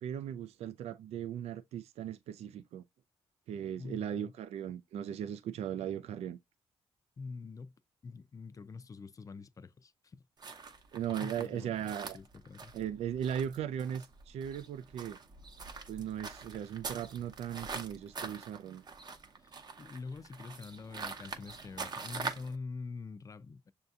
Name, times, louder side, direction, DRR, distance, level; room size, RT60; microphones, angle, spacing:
voice 1, 0.0-2.8 3.5-6.4 10.9-12.2 12.7-15.2 15.9-18.8, right 9 dB, 75° right, 0.4 m, -38 dB
voice 2, 3.8-4.3 7.2-7.7 8.0-10.2 11.1-12.7 19.4-23.7, left 4 dB, 35° left, 0.4 m, -45 dB
sound 1, 10.4-22.6, right 4 dB, 40° right, 0.7 m, -44 dB
6.6 x 2.7 x 2.4 m
cardioid pair, 85°, 11 cm